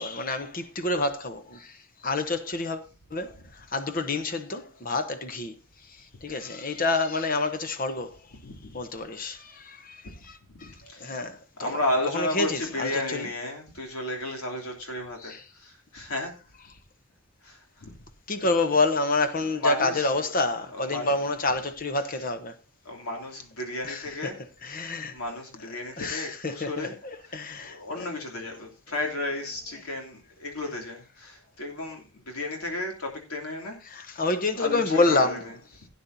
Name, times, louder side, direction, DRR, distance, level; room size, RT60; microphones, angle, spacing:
voice 1, 0.0-1.7 2.0-2.8 3.1-3.3 3.7-5.5 6.2-8.1 8.7-10.0 10.6-10.7 11.0-11.4 12.1-13.2 18.3-22.5 23.8-24.0 24.7-25.1 26.0-26.2 26.6-26.9 27.3-27.8 34.2-35.4, left 3 dB, 40° left, 1.0 m, -27 dB
voice 2, 8.4-8.8 10.5-10.6 10.9-11.3 11.5-16.4 17.4-18.0 19.4-21.2 22.0-22.3 22.8-24.4 24.7-34.2 34.5-35.9, left 1 dB, 85° left, 3.0 m, -34 dB
16.5 x 9.5 x 2.7 m
head